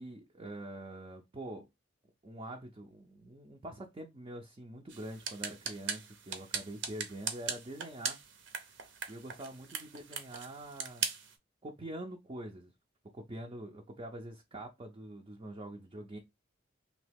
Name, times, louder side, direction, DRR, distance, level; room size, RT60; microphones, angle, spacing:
voice 1, 0.0-1.7 2.2-8.2 9.1-11.1 11.6-12.7 13.1-16.2, right 1 dB, 25° right, 0.4 m, -45 dB
sound 1, 4.9-11.3, right 6 dB, 65° right, 0.6 m, -40 dB
3.0 x 2.8 x 3.3 m
head